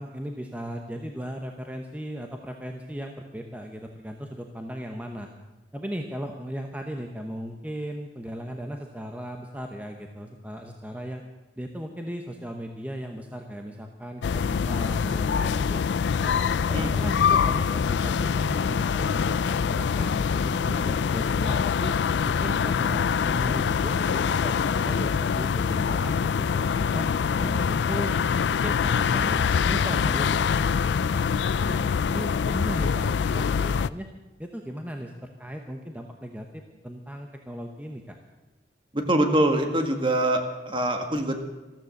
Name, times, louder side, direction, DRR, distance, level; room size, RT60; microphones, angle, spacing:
voice 1, 0.0-5.3 5.7-11.2 11.6-15.8 16.2-16.4 16.7-22.0 22.2-27.1 27.4-28.2 28.6-31.2 31.6-34.1 34.4-38.2, equal, 10° right, 3 dB, 1.0 m, -37 dB
sound 1, 14.2-33.9, left 6 dB, 80° left, 0.4 m, -24 dB
voice 2, 38.9-41.4, right 1 dB, 30° right, 5 dB, 1.7 m, -24 dB
14.0 x 14.0 x 6.5 m, 1.2 s
head